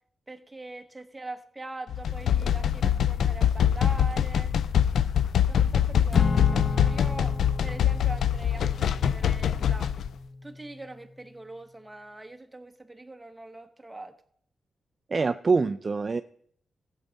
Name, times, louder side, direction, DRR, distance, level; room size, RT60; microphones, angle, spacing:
voice 1, 0.3-4.5 5.3-9.9 10.4-14.1, right 2 dB, 10° right, 5 dB, 1.1 m, -43 dB
sound 1, 1.9-10.1, left 9 dB, 85° left, 0.4 m, -24 dB
Acoustic guitar / Strum, 6.1-10.6, left 2 dB, 40° left, 1.2 m, -33 dB
voice 2, 15.1-16.2, right 4 dB, 35° right, 11 dB, 0.3 m, -25 dB
15.5 x 8.2 x 4.0 m, 0.63 s
wide cardioid pair, 135°, 0 cm